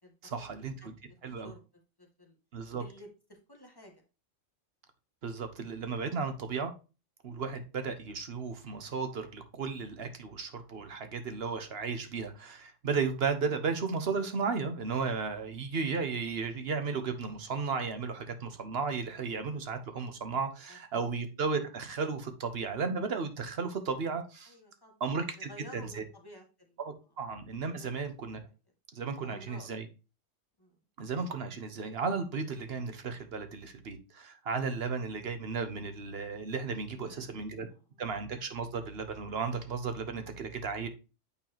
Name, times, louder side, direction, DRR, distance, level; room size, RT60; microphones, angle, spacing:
voice 1, 0.2-0.9 1.2-1.5 2.5-2.8 5.2-6.7 7.2-24.5 25.0-26.0 26.8-28.4 28.9-29.8 31.0-37.7 38.0-40.9, right 5 dB, 55° right, 1.3 m, -34 dB
voice 2, 0.8-2.4 2.8-4.0 20.7-21.1 24.5-24.9 25.4-26.8 27.7-28.2 29.2-29.7 30.6-30.8 36.9-37.4 37.6-38.0, equal, 20° left, 1.7 m, -53 dB
8.7 x 4.5 x 2.9 m
omnidirectional pair, 1.3 m